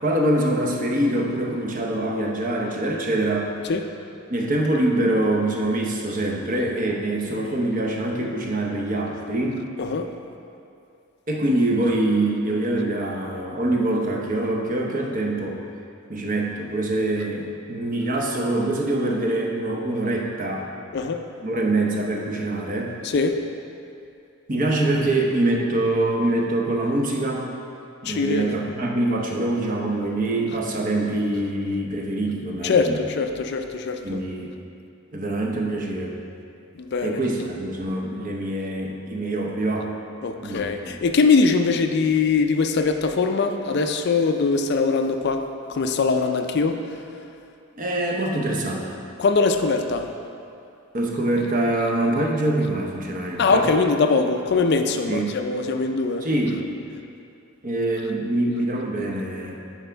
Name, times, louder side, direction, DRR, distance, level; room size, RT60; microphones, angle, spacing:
voice 1, 0.0-3.5 4.3-9.6 11.3-15.6 16.1-20.7 21.4-22.9 24.5-27.5 28.0-33.0 34.0-34.5 35.1-36.1 37.0-39.9 40.4-40.7 47.8-48.9 50.9-53.7 55.1-55.3 56.2-56.6 57.6-59.5, right 1 dB, 40° right, 0 dB, 0.7 m, -24 dB
voice 2, 9.8-10.1 20.9-21.2 23.0-23.4 28.0-28.6 32.6-34.2 36.8-37.2 40.2-45.4 45.7-46.8 49.2-50.1 53.4-56.3, left 4 dB, 50° left, 6 dB, 0.4 m, -22 dB
11.0 x 4.6 x 3.4 m, 2.5 s
head